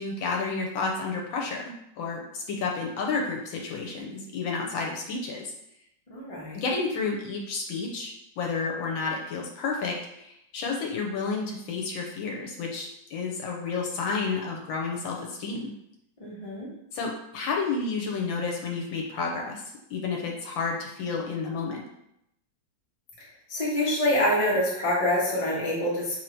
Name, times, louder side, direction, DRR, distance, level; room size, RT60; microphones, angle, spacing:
voice 1, 0.0-5.5 6.5-8.1 8.4-15.7 16.9-19.6 19.9-21.8, left 4 dB, 75° left, 0 dB, 1.4 m, -31 dB
voice 2, 6.1-6.6 16.2-16.7 23.5-26.2, left 1 dB, 25° left, -6 dB, 1.0 m, -26 dB
3.2 x 2.8 x 4.4 m, 0.79 s
omnidirectional pair, 2.1 m